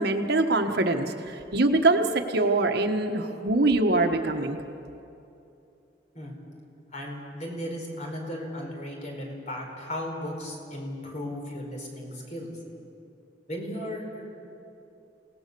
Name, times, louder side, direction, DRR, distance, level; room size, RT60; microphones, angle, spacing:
voice 1, 0.0-4.6, right 2 dB, 60° right, 5 dB, 1.4 m, -24 dB
voice 2, 6.9-12.5 13.5-14.5, equal, 40° left, 1 dB, 4.8 m, -36 dB
29.0 x 18.5 x 6.9 m, 2.7 s
head